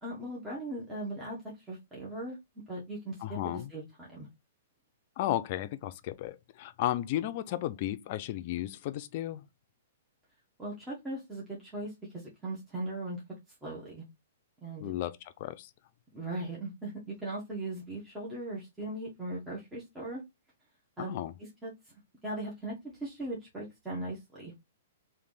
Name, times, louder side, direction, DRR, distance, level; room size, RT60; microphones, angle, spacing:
voice 1, 0.0-4.3 10.6-13.2 13.6-14.0 14.6-14.9 16.1-20.2 21.0-21.2 21.6-21.7 22.2-24.5, right 1 dB, 10° right, 1.1 m, -39 dB
voice 2, 3.2-3.7 5.2-9.5 14.8-15.7 21.0-21.3, left 13 dB, 50° left, 0.5 m, -34 dB
3.3 x 2.6 x 3.8 m
hypercardioid pair, 130°, 0 cm